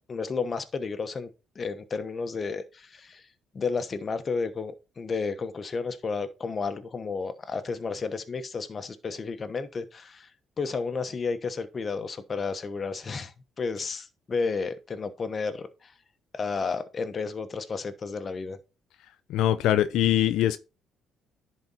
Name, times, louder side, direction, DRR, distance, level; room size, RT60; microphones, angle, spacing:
voice 1, 0.1-1.3 1.5-3.2 3.5-10.3 10.6-15.9 16.3-18.6, left 4 dB, 40° left, 1.1 m, -32 dB
voice 2, 19.3-20.6, left 12 dB, 85° left, 0.5 m, -22 dB
10.5 x 4.3 x 4.2 m
cardioid pair, 95°, 0 cm